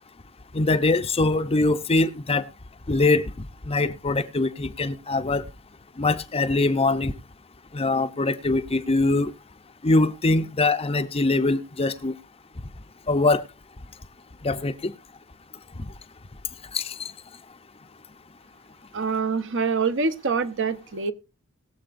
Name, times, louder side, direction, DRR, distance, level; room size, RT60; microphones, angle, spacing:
voice 1, 0.5-2.5 2.9-5.5 6.0-7.1 7.7-9.3 9.8-12.2 13.1-13.4 14.4-14.9 16.7-17.1, left 2 dB, 25° left, 0.7 m, -23 dB
voice 2, 18.9-21.1, right 5 dB, 60° right, 0.9 m, -25 dB
21.0 x 7.5 x 2.5 m
head